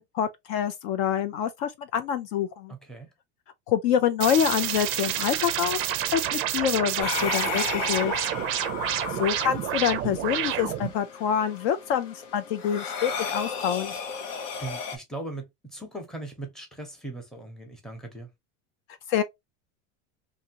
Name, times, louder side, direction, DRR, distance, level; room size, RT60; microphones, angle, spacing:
voice 1, 0.0-2.7 3.7-5.9 6.1-8.1 9.1-13.9 19.1-19.2, left 9 dB, 55° left, 0.5 m, -26 dB
voice 2, 2.7-3.1 9.1-9.3 14.6-18.3, right 2 dB, ahead, 0.8 m, -39 dB
sound 1, 4.2-10.9, right 12 dB, 35° right, 0.4 m, -29 dB
sound 2, 7.0-15.0, left 6 dB, 90° left, 1.0 m, -34 dB
2.7 x 2.6 x 2.7 m
supercardioid pair, 135°, 37 cm